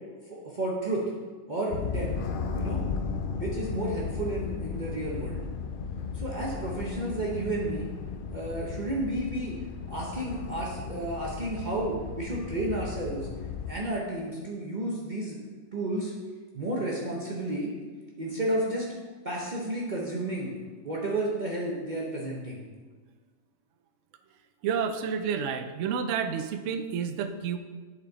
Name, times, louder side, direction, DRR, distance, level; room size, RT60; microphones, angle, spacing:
voice 1, 0.3-1.0 1.5-2.1 2.4-2.8 3.4-5.4 6.1-7.9 8.3-9.6 9.9-13.3 13.7-15.4 15.7-16.1 16.5-17.7 18.2-18.9 19.2-20.5 20.8-22.6, right 1 dB, 35° right, -4 dB, 0.9 m, -32 dB
sound 1, 1.7-13.7, left 5 dB, 80° left, 0.4 m, -35 dB
voice 2, 24.6-27.6, right 7 dB, 70° right, 8 dB, 0.9 m, -30 dB
10.0 x 4.5 x 3.9 m, 1.4 s
omnidirectional pair, 1.5 m